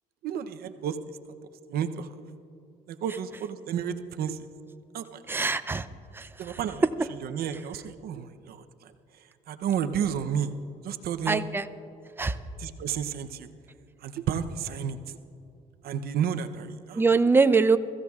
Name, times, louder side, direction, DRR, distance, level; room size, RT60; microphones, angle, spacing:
voice 1, 0.2-1.2 1.7-2.1 2.9-4.5 4.9-5.2 6.4-6.9 7.2-8.9 9.5-10.5 10.8-11.4 12.6-13.5 14.0-15.2 15.8-17.0, right 8 dB, 65° right, 9 dB, 0.7 m, -31 dB
voice 2, 5.3-5.9 6.1-6.3 11.3-11.7 12.2-12.4 16.9-17.8, right 4 dB, 15° right, 12 dB, 0.5 m, -22 dB
22.5 x 15.0 x 2.4 m, 2.7 s
cardioid pair, 110°, 17 cm